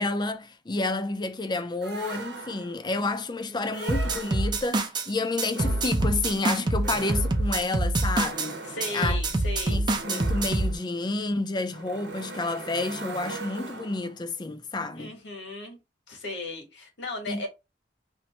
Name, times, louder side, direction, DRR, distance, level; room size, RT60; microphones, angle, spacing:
voice 1, 0.0-8.6 8.9-9.4 9.7-15.1 17.3-17.4, left 3 dB, 25° left, 0.4 m, -30 dB
sound 1, 1.8-2.9 3.7-4.7 5.5-14.2, right 3 dB, 75° right, 0.9 m, -40 dB
voice 2, 2.9-3.8 8.7-9.8 14.9-15.8 16.1-17.5, left 2 dB, 85° left, 1.5 m, -37 dB
sound 2, 3.9-5.1 5.4-8.5 8.8-10.7, right 2 dB, 25° right, 0.6 m, -26 dB
3.0 x 2.6 x 4.3 m
head